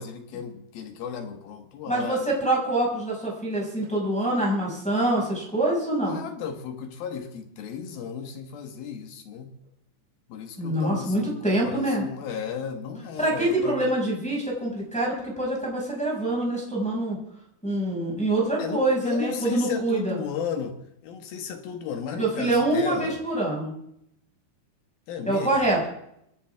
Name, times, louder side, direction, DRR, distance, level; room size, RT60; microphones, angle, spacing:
voice 1, 0.0-2.3 6.0-9.5 10.3-13.8 18.6-20.8 21.0-23.2 25.1-25.6, left 7 dB, 70° left, 6 dB, 3.1 m, -34 dB
voice 2, 1.9-6.2 10.6-12.0 13.2-17.2 17.6-20.2 22.2-23.7 25.3-25.9, right 1 dB, ahead, -4 dB, 5.3 m, -25 dB
26.0 x 11.0 x 3.5 m, 0.76 s
omnidirectional pair, 4.8 m